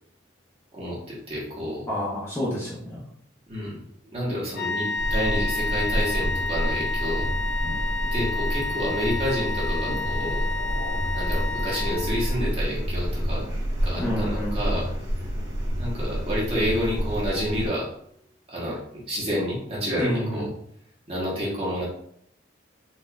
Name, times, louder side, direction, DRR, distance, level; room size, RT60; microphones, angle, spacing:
voice 1, 0.7-1.9 3.5-3.8 4.0-7.3 8.1-10.5 11.1-13.4 13.8-15.3 15.7-17.9 18.5-18.8 19.1-20.5 21.1-21.8, equal, 30° right, -6 dB, 1.2 m, -29 dB
voice 2, 1.9-3.0 14.0-14.6 20.0-20.5, equal, 10° left, -8 dB, 0.8 m, -28 dB
sound 1, 4.5-12.4, left 3 dB, 55° left, 0.6 m, -30 dB
sound 2, 5.0-17.7, equal, 60° right, 1.2 m, -28 dB
4.3 x 2.7 x 2.3 m, 0.67 s
head